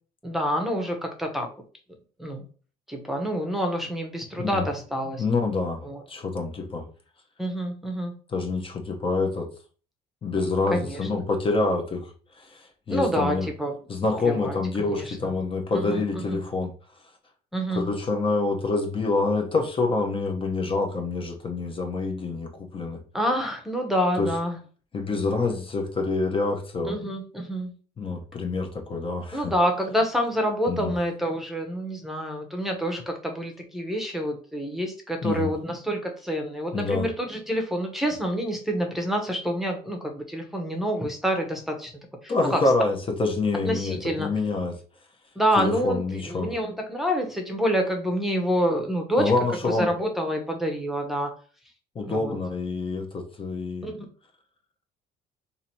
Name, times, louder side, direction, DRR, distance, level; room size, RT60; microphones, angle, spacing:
voice 1, 0.2-1.5 2.2-2.4 2.9-5.2 5.8-6.0 7.4-8.1 10.7-11.0 12.9-13.8 14.2-15.4 15.7-16.4 17.5-17.9 23.1-24.6 26.8-27.7 29.3-41.9 42.2-42.6 43.6-44.3 45.4-49.3 49.6-51.3 52.0-52.4 53.8-54.1, equal, ahead, 3 dB, 0.8 m, -27 dB
voice 2, 5.2-6.9 8.3-9.5 10.2-13.5 13.9-16.7 17.7-23.0 24.2-24.3 24.9-27.0 28.0-29.5 30.7-30.9 35.2-35.5 36.7-37.1 42.3-44.7 45.6-46.5 49.2-49.9 51.9-53.9, left 3 dB, 30° left, 3 dB, 0.7 m, -26 dB
2.8 x 2.6 x 4.3 m, 0.40 s
cardioid pair, 110°, 17 cm